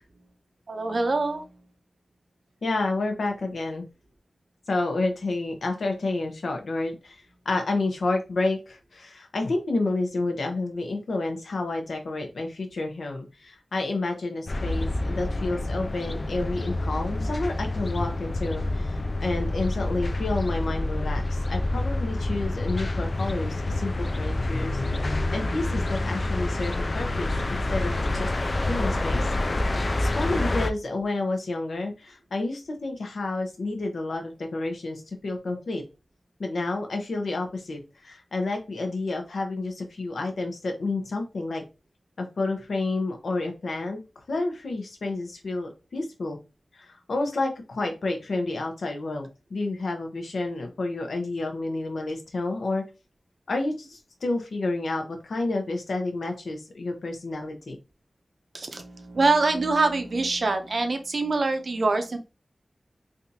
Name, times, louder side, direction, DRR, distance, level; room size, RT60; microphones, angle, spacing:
voice 1, 0.7-1.6 58.5-62.2, right 3 dB, 60° right, 6 dB, 0.6 m, -25 dB
voice 2, 2.6-3.9 4.7-7.2 7.4-24.8 25.3-28.3 28.7-29.2 29.6-35.8 36.4-41.6 42.2-44.0 44.3-46.4 46.7-52.8 53.5-57.8, left 2 dB, 85° left, 4 dB, 0.8 m, -30 dB
sound 1, 14.5-30.7, left 2 dB, 45° left, 0.3 m, -27 dB
3.4 x 2.7 x 2.7 m, 0.29 s
wide cardioid pair, 85°, 0 cm